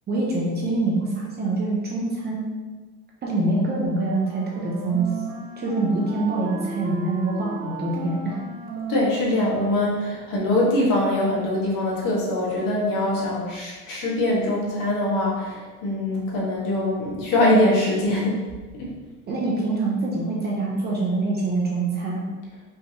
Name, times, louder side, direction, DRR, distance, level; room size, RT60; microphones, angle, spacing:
voice 1, 0.1-2.5 3.2-5.1 5.6-8.4 19.3-22.2, right 2 dB, 25° right, -4 dB, 0.7 m, -25 dB
Wind instrument woodwind instrument, 4.1-10.1, right 4 dB, 80° right, 0.9 m, -35 dB
voice 2, 8.9-18.4 18.7-18.9, left 1 dB, 55° left, -4 dB, 1.4 m, -23 dB
5.5 x 3.4 x 2.8 m, 1.3 s
cardioid pair, 160°, 40 cm